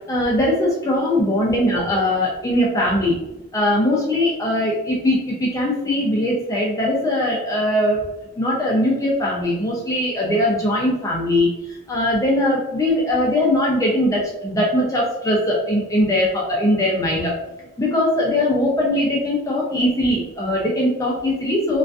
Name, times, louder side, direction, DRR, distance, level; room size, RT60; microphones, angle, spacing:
voice 1, 0.1-3.2 3.5-8.0 8.4-11.5 11.9-17.3 17.8-21.8, left 1 dB, 15° left, -4 dB, 0.4 m, -20 dB
2.4 x 2.4 x 2.3 m, 0.98 s
head